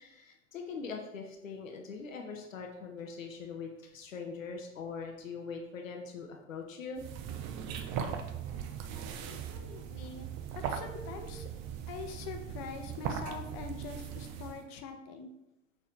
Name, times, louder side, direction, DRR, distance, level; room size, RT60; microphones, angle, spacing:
voice 1, 0.0-7.0, left 5 dB, 85° left, 1 dB, 0.6 m, -42 dB
sound 1, 7.0-14.7, right 8 dB, 45° right, 0.5 m, -39 dB
voice 2, 8.9-11.5 11.9-15.3, left 5 dB, 55° left, 5 dB, 0.7 m, -44 dB
5.8 x 2.6 x 3.2 m, 0.91 s
figure-of-eight pair, 75°, 38 cm